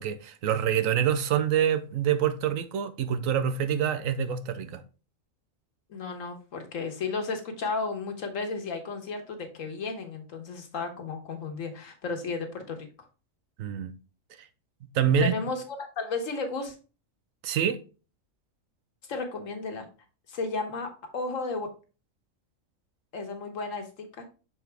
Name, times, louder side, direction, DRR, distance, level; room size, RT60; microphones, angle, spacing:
voice 1, 0.0-4.8 13.6-13.9 14.9-15.3 17.4-17.8, right 8 dB, 85° right, 1.1 m, -26 dB
voice 2, 5.9-12.8 15.2-16.7 19.1-19.9 20.3-21.7 23.1-24.3, left 3 dB, 75° left, 1.5 m, -33 dB
7.0 x 4.1 x 3.4 m
omnidirectional pair, 1.3 m